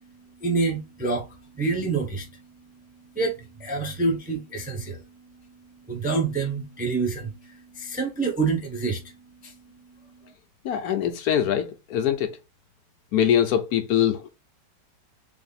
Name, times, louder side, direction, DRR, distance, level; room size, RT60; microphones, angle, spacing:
voice 1, 0.4-2.4 3.2-5.0 5.9-9.1 9.4-9.5, right 4 dB, 10° right, 0.5 m, -27 dB
voice 2, 10.6-12.4 13.1-14.3, left 9 dB, 70° left, 1.0 m, -23 dB
3.5 x 3.3 x 4.0 m
omnidirectional pair, 1.8 m